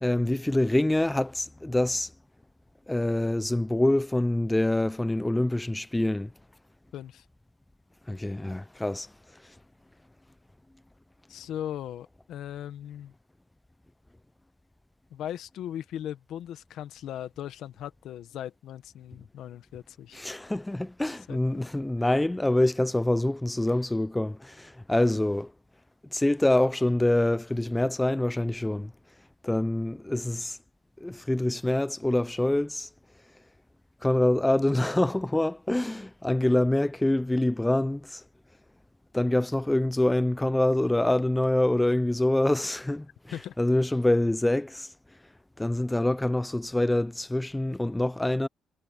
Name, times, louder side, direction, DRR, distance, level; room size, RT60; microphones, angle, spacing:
voice 1, 0.0-2.1 2.9-6.3 8.1-9.1 20.1-25.5 26.1-28.9 29.4-30.6 31.0-32.9 34.0-38.2 39.1-43.1 43.6-44.9 45.6-48.5, left 1 dB, 10° left, 0.4 m, -25 dB
voice 2, 6.9-7.2 11.3-13.1 15.1-20.2 21.3-21.6 43.3-43.5, left 11 dB, 80° left, 1.2 m, -38 dB
cardioid pair, 90°, 0 cm